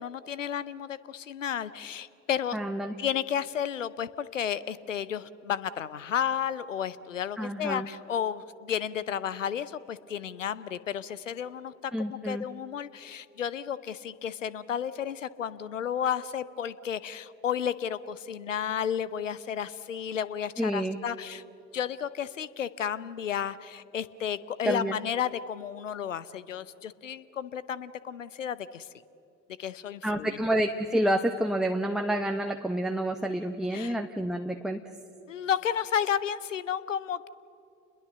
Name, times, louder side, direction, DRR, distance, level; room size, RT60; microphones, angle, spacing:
voice 1, 0.0-2.6 3.0-21.4 21.7-28.9 29.6-30.4 33.7-34.0 35.3-37.3, left 8 dB, 85° left, 18 dB, 0.7 m, -32 dB
voice 2, 2.5-2.9 7.4-7.9 11.9-12.4 20.6-21.0 24.6-24.9 30.0-34.8, right 1 dB, ahead, 5 dB, 1.1 m, -28 dB
29.0 x 21.5 x 6.8 m, 2.9 s
figure-of-eight pair, 60°, 37 cm